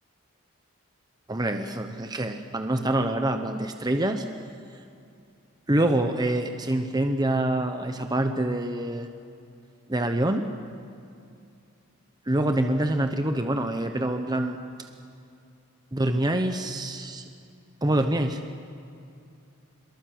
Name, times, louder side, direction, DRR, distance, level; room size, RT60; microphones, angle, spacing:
voice 1, 1.3-4.3 5.7-9.1 9.9-10.5 12.3-14.6 15.9-17.2 17.8-18.4, right 1 dB, 20° right, 6 dB, 0.9 m, -26 dB
23.5 x 22.5 x 7.8 m, 2.5 s
head